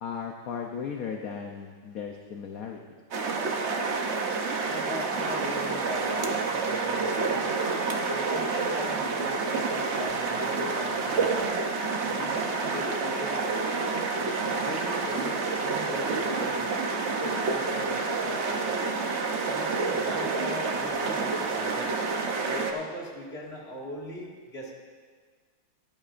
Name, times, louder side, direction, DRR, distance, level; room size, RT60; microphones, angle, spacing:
voice 1, 0.0-2.8, left 6 dB, 65° left, 2 dB, 0.9 m, -36 dB
sound 1, 3.1-22.7, right 4 dB, 55° right, 0.7 m, -28 dB
voice 2, 4.5-7.5 8.1-11.3 12.0-13.5 14.1-16.7 17.0-18.6 19.5-22.0 22.5-24.7, left 1 dB, 30° left, -4 dB, 2.1 m, -40 dB
17.5 x 11.5 x 2.5 m, 1.5 s
omnidirectional pair, 2.3 m